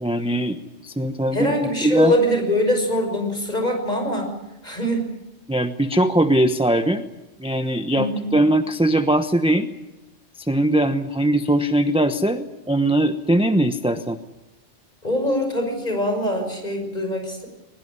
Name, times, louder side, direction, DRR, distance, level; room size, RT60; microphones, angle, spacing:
voice 1, 0.0-1.5 1.8-2.1 5.5-7.1 7.4-9.7 10.4-14.2, right 1 dB, 5° right, 8 dB, 1.0 m, -20 dB
voice 2, 1.3-4.3 4.6-5.1 7.9-8.3 15.0-17.5, left 1 dB, 40° left, 4 dB, 6.3 m, -23 dB
22.5 x 20.5 x 9.7 m, 0.99 s
omnidirectional pair, 1.2 m